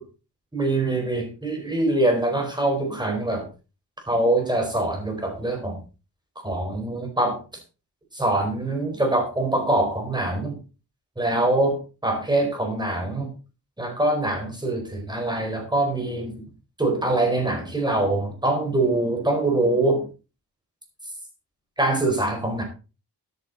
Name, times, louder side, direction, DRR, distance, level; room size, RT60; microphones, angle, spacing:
voice 1, 0.5-3.5 4.1-5.8 6.4-7.4 8.1-10.6 11.2-13.3 13.8-16.4 16.8-20.0 21.8-22.6, right 2 dB, 10° right, 3 dB, 4.6 m, -24 dB
13.5 x 10.5 x 4.1 m, 0.32 s
wide cardioid pair, 160°, 40 cm